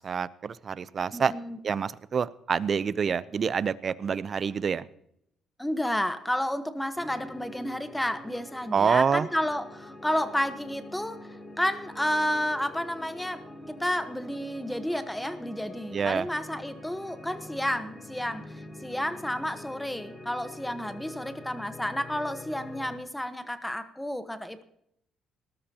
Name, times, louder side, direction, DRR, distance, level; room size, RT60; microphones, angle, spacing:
voice 1, 0.0-1.3 1.6-4.9 8.7-9.3 15.9-16.3, right 6 dB, 45° right, 18 dB, 0.6 m, -27 dB
voice 2, 1.1-1.6 5.6-18.5 18.8-24.6, left 1 dB, 5° left, 10 dB, 1.2 m, -31 dB
sound 1, 6.9-23.0, left 1 dB, 20° left, 3.8 m, -45 dB
19.5 x 13.0 x 2.9 m, 0.75 s
cardioid pair, 85°, 0 cm